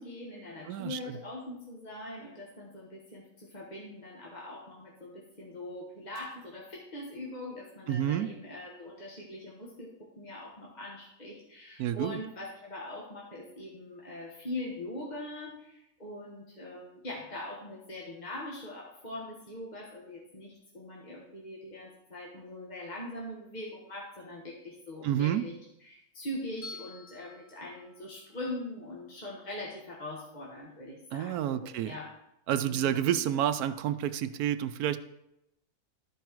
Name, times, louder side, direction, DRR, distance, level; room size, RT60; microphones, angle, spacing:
voice 1, 0.0-25.5 25.8-32.1 32.6-33.2, left 1 dB, 30° left, -4 dB, 1.5 m, -42 dB
voice 2, 0.7-1.2 7.9-8.3 11.8-12.2 25.0-25.4 31.1-32.0 32.5-35.0, right 11 dB, 80° right, 11 dB, 1.1 m, -29 dB
Bell, 26.6-28.8, left 4 dB, 85° left, 2.4 m, -49 dB
13.5 x 4.7 x 4.6 m, 0.85 s
omnidirectional pair, 1.6 m